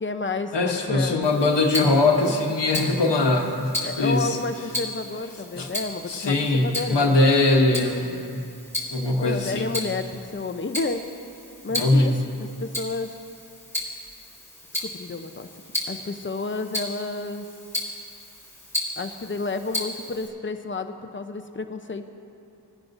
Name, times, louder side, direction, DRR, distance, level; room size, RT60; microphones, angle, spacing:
voice 1, 0.0-1.3 3.8-7.2 9.2-11.0 11.6-12.2 12.6-13.1 14.8-15.5 15.9-17.5 19.0-22.1, left 3 dB, 30° left, 7 dB, 0.6 m, -31 dB
voice 2, 0.5-4.4 5.5-5.7 6.1-8.5 8.9-9.7 11.7-12.2, left 2 dB, 85° left, 2 dB, 1.1 m, -21 dB
Tick-tock, 1.2-20.3, left 1 dB, 5° left, 2.3 m, -35 dB
18.5 x 10.5 x 2.6 m, 2.6 s
wide cardioid pair, 45°, 41 cm